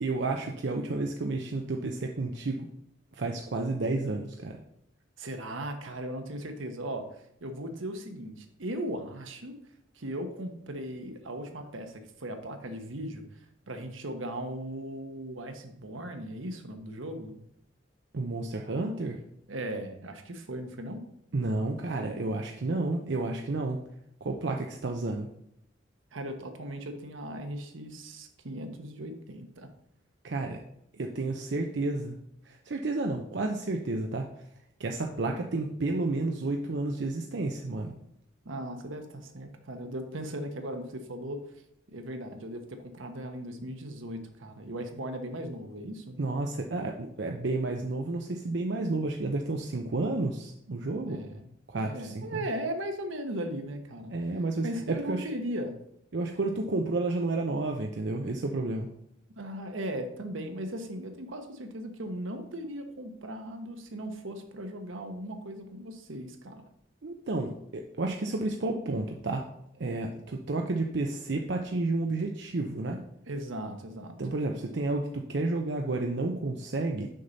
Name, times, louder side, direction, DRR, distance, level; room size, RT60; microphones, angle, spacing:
voice 1, 0.0-2.7 3.1-4.6 18.1-19.2 21.3-23.8 24.2-25.3 30.2-30.6 30.9-32.2 32.4-34.3 34.8-37.9 46.2-51.2 51.7-52.5 54.1-55.3 56.1-58.9 67.0-69.5 69.8-73.0 74.2-77.1, right 2 dB, 60° right, 3 dB, 0.5 m, -31 dB
voice 2, 5.2-9.6 9.9-17.4 19.5-21.0 26.1-29.7 38.4-41.5 41.9-46.2 51.0-51.4 51.8-54.1 54.6-55.8 59.4-66.6 73.3-74.2, right 1 dB, 80° right, 6 dB, 1.0 m, -38 dB
6.5 x 5.7 x 3.9 m, 0.76 s
head